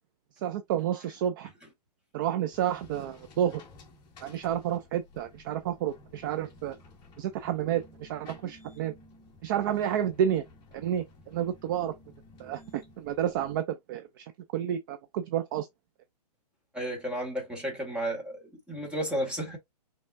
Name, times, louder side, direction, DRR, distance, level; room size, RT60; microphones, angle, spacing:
voice 1, 0.4-1.5 2.1-3.6 4.2-6.8 7.2-8.9 9.4-10.4 10.7-11.9 12.4-15.7, right 10 dB, 30° right, 0.5 m, -30 dB
sound 1, 2.5-13.6, left 2 dB, 20° left, 1.6 m, -54 dB
voice 2, 16.7-19.6, right 1 dB, 5° right, 1.7 m, -33 dB
5.5 x 3.7 x 2.6 m
hypercardioid pair, 155°, 21 cm